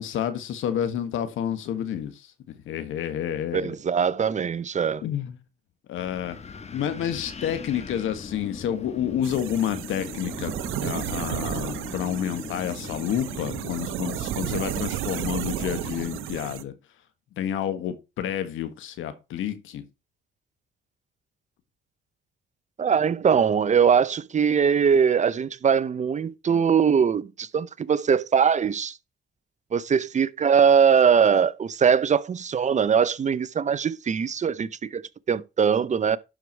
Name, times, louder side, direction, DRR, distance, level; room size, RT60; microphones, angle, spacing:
voice 1, 0.0-2.3 2.6-3.7 5.0-5.4 5.9-6.4 6.7-10.5 10.8-16.7 17.4-19.8, left 10 dB, 80° left, 1.5 m, -29 dB
voice 2, 3.5-5.0 22.8-29.0 29.7-35.0 35.3-36.2, right 7 dB, 35° right, 0.6 m, -21 dB
Wind, 6.0-16.3, left 5 dB, 35° left, 1.4 m, -40 dB
sound 1, 9.2-16.6, right 13 dB, 90° right, 0.8 m, -33 dB
11.5 x 4.7 x 4.5 m
cardioid pair, 90°, 20 cm